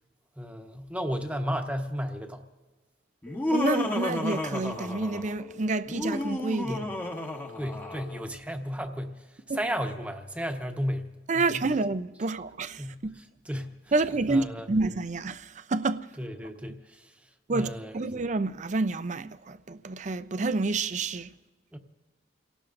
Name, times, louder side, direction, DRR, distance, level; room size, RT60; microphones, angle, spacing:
voice 1, 0.4-2.4 6.6-6.9 7.6-11.7 12.8-13.9 14.3-14.7 16.2-17.1 17.5-18.0 21.7-21.8, equal, 10° right, 1.1 m, -34 dB
Laughter, 3.2-5.4 5.8-8.2, left 1 dB, 10° left, 1.2 m, -32 dB
sound 1, 3.3-8.3, left 8 dB, 40° left, 0.8 m, -47 dB
voice 2, 3.5-6.8 9.5-9.6 11.3-13.1 13.9-16.1 17.5-21.3, right 3 dB, 40° right, 0.5 m, -29 dB
29.5 x 18.0 x 2.6 m
head